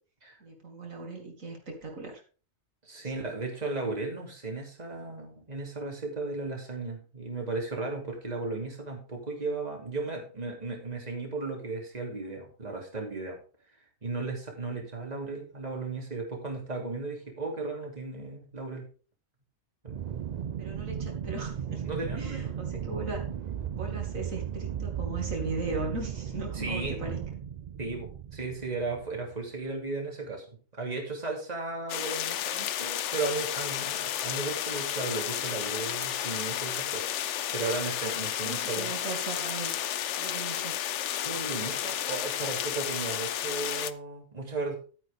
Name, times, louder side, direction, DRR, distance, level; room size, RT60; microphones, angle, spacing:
voice 1, 0.4-2.2 3.0-3.3 20.6-21.8 22.1-23.2 23.7-27.2 38.4-39.8 40.2-40.8, right 3 dB, 80° right, 1 dB, 2.7 m, -38 dB
voice 2, 2.8-13.4 14.0-18.9 19.8-20.0 21.8-22.4 26.5-27.0 27.8-30.4 30.7-37.1 37.5-38.9 41.2-44.8, right 3 dB, 30° right, 0 dB, 2.8 m, -35 dB
Aircraft, 19.9-29.3, right 9 dB, 65° right, 0.4 m, -36 dB
sound 1, 31.9-43.9, left 11 dB, 65° left, 0.9 m, -32 dB
11.5 x 9.2 x 3.5 m, 0.37 s
omnidirectional pair, 1.4 m